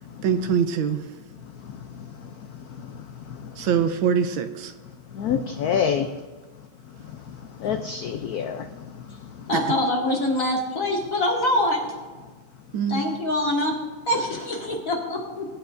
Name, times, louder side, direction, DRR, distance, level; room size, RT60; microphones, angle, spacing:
voice 1, 0.2-1.0 3.6-4.7 9.5-9.7 12.7-13.0, right 7 dB, 80° right, 1.5 m, -23 dB
voice 2, 5.1-6.1 7.6-8.7, left 7 dB, 75° left, 0.9 m, -25 dB
voice 3, 9.5-11.8 12.9-13.7 14.1-15.5, left 1 dB, 40° left, 2.5 m, -24 dB
22.0 x 9.5 x 2.6 m
omnidirectional pair, 2.2 m